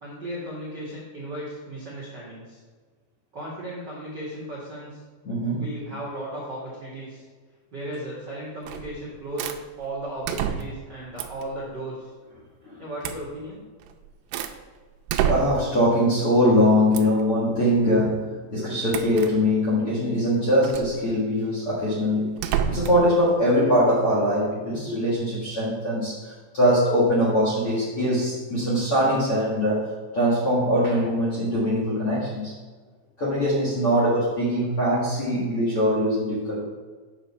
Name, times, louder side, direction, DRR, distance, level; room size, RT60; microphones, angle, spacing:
voice 1, 0.0-2.6 3.3-5.0 5.6-7.2 7.7-12.1 12.8-13.6, right 1 dB, 60° right, -6 dB, 1.1 m, -35 dB
voice 2, 5.3-5.6 12.6-12.8 15.2-22.4 22.7-32.5 33.2-36.6, equal, 50° left, -5 dB, 1.7 m, -22 dB
sound 1, 8.7-9.0 9.4-9.6 10.3-10.9 11.2-11.5 13.0-13.3 13.8-14.6 15.1-15.8 16.9-17.2 18.9-19.3 20.6-20.9 22.4-23.1, right 8 dB, 80° right, 2.8 m, -28 dB
9.1 x 7.2 x 4.3 m, 1.5 s
omnidirectional pair, 5.5 m